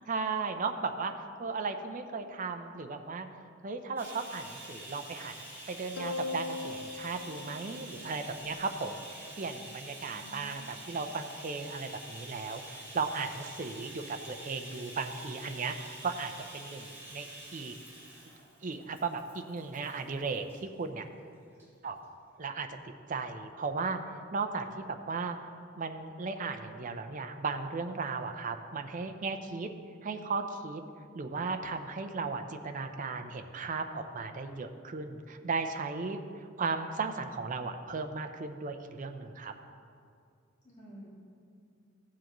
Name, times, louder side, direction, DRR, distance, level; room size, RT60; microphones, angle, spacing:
voice 1, 0.1-1.1 1.4-3.3 3.6-17.7 18.6-21.0 21.8-22.0 22.4-22.7 23.1-25.4 25.8-29.7 30.0-30.8 31.1-39.5, right 4 dB, 40° right, 6 dB, 0.5 m, -36 dB
Bathtub (filling or washing), 4.0-20.6 21.5-21.7 22.0-22.1, right 1 dB, 10° right, 2.7 m, -47 dB
sound 1, 6.0-8.6, left 4 dB, 90° left, 0.5 m, -39 dB
voice 2, 10.1-10.7 40.6-41.1, equal, 35° left, -7 dB, 2.0 m, -51 dB
15.0 x 7.4 x 3.0 m, 2.3 s
head